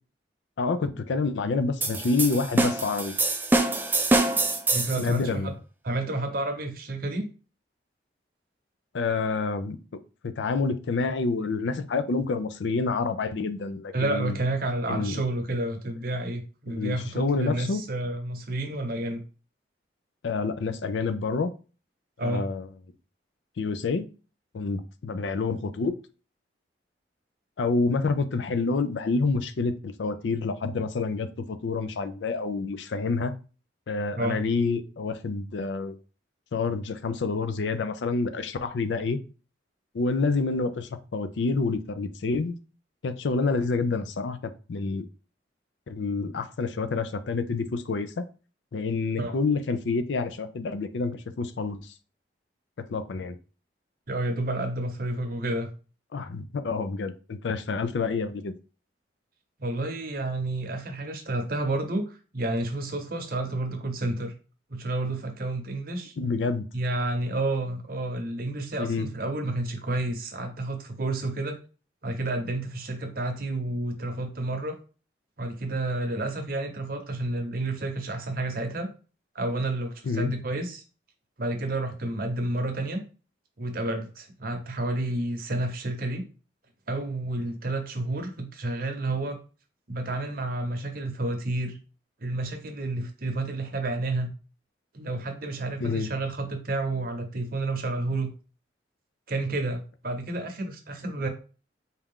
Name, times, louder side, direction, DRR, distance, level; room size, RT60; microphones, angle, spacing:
voice 1, 0.6-3.1 5.0-5.5 8.9-9.8 10.2-14.4 14.9-15.2 16.7-17.8 20.2-21.5 22.2-22.7 23.6-24.0 24.5-25.9 27.6-33.3 33.9-36.0 36.5-39.2 39.9-42.6 43.0-44.4 44.7-45.1 45.9-48.2 48.7-51.9 52.9-53.3 56.1-58.5 66.2-66.7 68.8-69.1 80.0-80.3 95.8-96.1, left 4 dB, 75° left, 11 dB, 0.4 m, -28 dB
sound 1, 1.8-5.1, right 2 dB, 10° right, 0.3 m, -25 dB
voice 2, 4.7-5.5 5.8-7.3 13.9-19.2 22.2-22.4 34.2-34.4 49.2-49.3 54.1-55.7 59.6-64.3 64.7-66.1 66.7-71.6 72.0-74.7 75.4-78.9 79.3-80.8 81.4-83.0 83.6-86.2 86.9-89.4 89.9-91.8 92.2-94.3 94.9-98.3 99.3-101.3, right 2 dB, 50° right, 5 dB, 0.8 m, -30 dB
4.3 x 2.4 x 3.6 m, 0.35 s
head